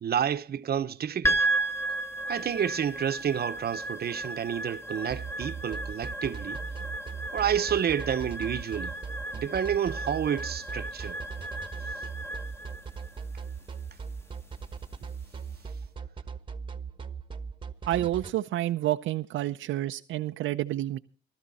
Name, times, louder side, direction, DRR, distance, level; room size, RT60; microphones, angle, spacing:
voice 1, 0.0-1.4 2.3-6.6 7.3-8.9 9.3-11.2, right 9 dB, 50° right, 1.0 m, -29 dB
sound 1, 1.2-15.6, right 2 dB, 10° left, 1.7 m, -34 dB
sound 2, 5.1-18.3, right 5 dB, 25° right, 1.3 m, -38 dB
voice 2, 17.9-21.0, right 14 dB, 80° right, 0.6 m, -29 dB
19.0 x 12.5 x 4.2 m
cardioid pair, 90°, 20 cm